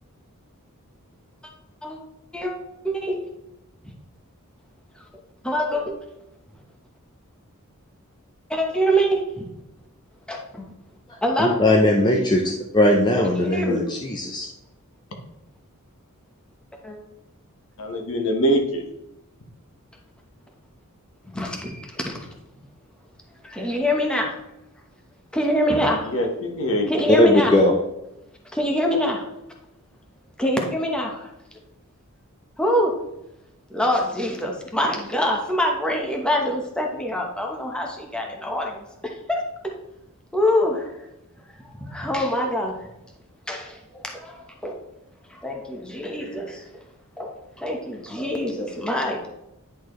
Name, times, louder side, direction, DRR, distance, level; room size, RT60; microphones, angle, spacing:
voice 1, 2.8-3.2 5.4-5.9 8.5-9.4 10.3-10.7 11.2-11.5 13.4-13.8 16.8-17.0 21.3-22.2 23.4-24.3 25.3-26.1 26.9-27.5 28.6-29.2 30.4-31.3 32.6-32.9 33.7-39.4 40.3-41.0 41.8-42.8 43.5-44.8 45.3-46.8 47.2-49.3, equal, 5° left, 0 dB, 1.0 m, -25 dB
voice 2, 11.4-12.4 12.7-14.5 27.1-27.7, left 1 dB, 20° left, 0 dB, 0.6 m, -18 dB
voice 3, 17.8-18.8 26.0-27.0, equal, 65° left, 3 dB, 1.2 m, -23 dB
10.0 x 4.5 x 3.1 m, 0.87 s
head